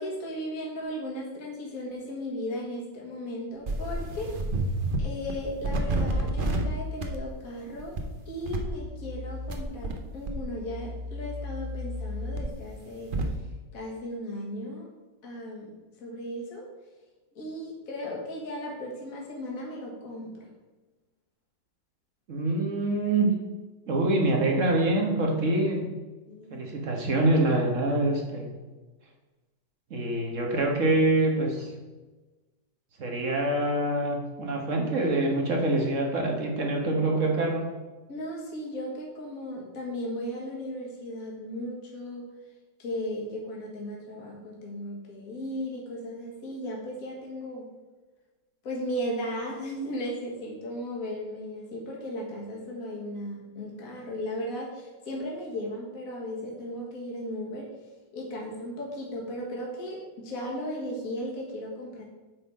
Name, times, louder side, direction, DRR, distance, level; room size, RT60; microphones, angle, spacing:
voice 1, 0.0-4.3 5.0-8.0 8.3-13.3 13.7-14.9 15.2-15.7 16.0-16.7 17.3-20.5 26.2-26.6 38.1-42.3 42.8-47.7 48.6-57.7 58.1-62.0, equal, 50° left, -3 dB, 1.9 m, -36 dB
sound 1, 3.7-5.0 5.3-6.7 7.0-7.3 7.8-8.0 8.4-10.0 10.3-13.3, right 1 dB, 85° right, 0.4 m, -31 dB
voice 2, 22.3-23.3 23.9-25.8 26.5-28.5 29.9-31.7 33.0-37.7, right 2 dB, 45° right, 1 dB, 1.5 m, -25 dB
8.2 x 4.0 x 4.9 m, 1.2 s
omnidirectional pair, 2.1 m